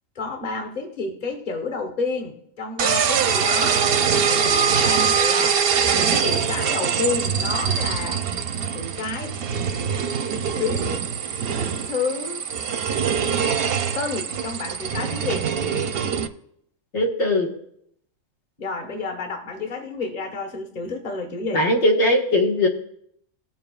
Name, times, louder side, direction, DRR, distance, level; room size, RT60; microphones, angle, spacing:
voice 1, 0.1-3.8 4.3-5.6 5.9-8.2 8.7-9.4 10.6-11.0 11.9-12.5 13.9-15.5 18.6-21.7, left 4 dB, 35° left, 4 dB, 1.2 m, -30 dB
sound 1, 2.8-16.3, right 7 dB, 60° right, 0.7 m, -23 dB
voice 2, 16.9-17.5 21.5-22.7, left 1 dB, 75° left, 0 dB, 1.9 m, -19 dB
19.0 x 7.1 x 2.3 m, 0.72 s
omnidirectional pair, 1.3 m